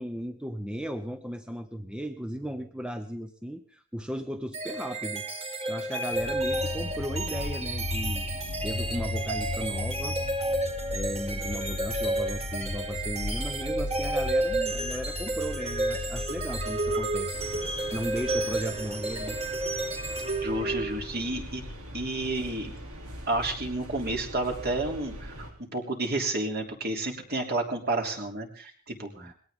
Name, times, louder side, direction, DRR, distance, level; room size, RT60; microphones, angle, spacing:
voice 1, 0.0-5.3 5.7-10.2 10.9-19.4 29.2-29.3, equal, 5° right, 8 dB, 0.8 m, -36 dB
sound 1, 4.5-21.2, right 2 dB, 30° right, 2.2 m, -31 dB
sound 2, 6.1-23.1, left 3 dB, 65° left, 0.7 m, -37 dB
sound 3, 17.3-25.5, equal, 75° right, 3.3 m, -42 dB
voice 2, 20.4-21.6 21.9-22.7 23.3-25.5 25.7-29.3, right 2 dB, 50° right, 2 dB, 3.2 m, -31 dB
21.0 x 17.5 x 3.7 m, 0.42 s
head